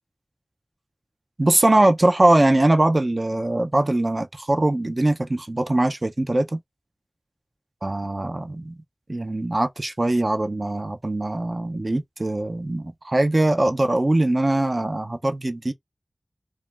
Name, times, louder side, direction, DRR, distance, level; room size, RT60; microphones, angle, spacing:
voice 1, 1.4-6.6 7.8-8.7 9.1-15.7, right 1 dB, 45° right, 0.4 m, -21 dB
2.3 x 2.1 x 3.1 m
wide cardioid pair, 60°, 0 cm